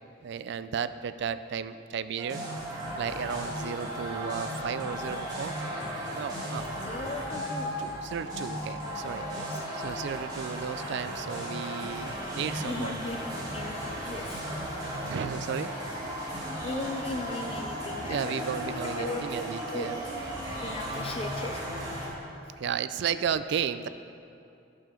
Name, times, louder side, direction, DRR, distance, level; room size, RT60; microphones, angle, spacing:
voice 1, 0.2-2.4 3.0-5.6 6.1-6.7 7.8-9.5 9.7-13.0 14.8-15.7 18.0-20.0 22.6-23.9, right 7 dB, 60° right, 12 dB, 0.3 m, -34 dB
sound 1, 2.2-22.1, equal, 20° right, 1.6 m, -35 dB
voice 2, 6.8-7.7 9.3-9.6 12.5-13.2 13.5-14.6 16.6-19.4 19.7-19.9 20.6-22.0 22.4-22.5, left 2 dB, 30° left, 3 dB, 0.4 m, -38 dB
12.0 x 6.9 x 3.7 m, 2.6 s
head